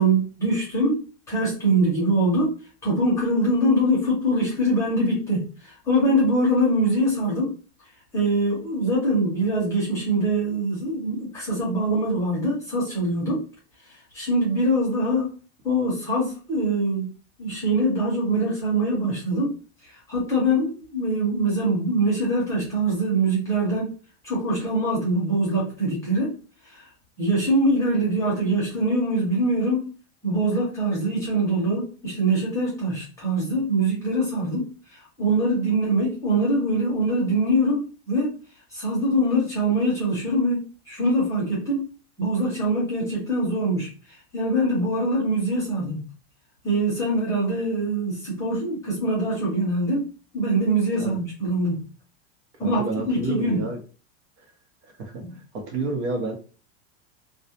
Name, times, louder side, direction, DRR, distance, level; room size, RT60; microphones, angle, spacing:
voice 1, 0.0-2.6 2.8-7.5 8.1-13.5 14.1-15.3 15.6-17.1 17.4-19.6 19.9-23.9 24.2-26.4 26.7-26.8 27.2-29.9 30.2-34.7 35.2-38.4 38.7-41.8 42.2-43.9 44.3-46.0 46.6-51.9 52.6-53.7 55.2-55.3, right 1 dB, 10° left, -6 dB, 0.6 m, -23 dB
voice 2, 52.6-53.8 54.8-55.2 55.5-56.3, right 3 dB, 75° right, 4 dB, 0.9 m, -29 dB
2.3 x 2.1 x 2.8 m, 0.37 s
supercardioid pair, 175°, 34 cm